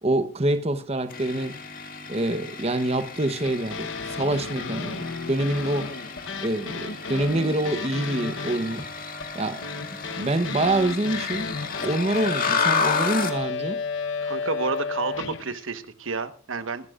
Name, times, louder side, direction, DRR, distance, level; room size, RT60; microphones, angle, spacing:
voice 1, 0.0-1.6 2.1-5.9 6.4-8.8 9.3-9.6 10.2-11.5 11.8-13.8, right 1 dB, 30° right, 0.9 m, -26 dB
sound 1, 1.1-13.4, left 5 dB, 45° left, 1.8 m, -32 dB
sound 2, 3.4-15.6, left 4 dB, 60° left, 1.0 m, -33 dB
voice 2, 14.2-16.9, right 4 dB, 70° right, 1.2 m, -30 dB
25.0 x 13.0 x 2.5 m
head